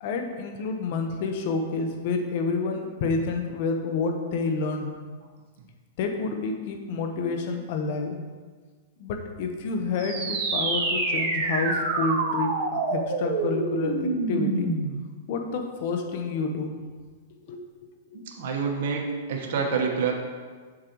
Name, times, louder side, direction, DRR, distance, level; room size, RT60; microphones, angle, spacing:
voice 1, 0.0-4.9 6.0-8.2 9.0-14.7 15.3-16.7 17.5-17.6 18.1-18.2, left 4 dB, 55° left, 5 dB, 0.9 m, -29 dB
sound 1, 10.0-15.0, right 3 dB, 40° right, 1.4 m, -27 dB
voice 2, 18.1-19.0 19.3-20.1, right 5 dB, 60° right, 1 dB, 1.2 m, -27 dB
7.4 x 6.6 x 3.0 m, 1.5 s
hypercardioid pair, 140°, 0 cm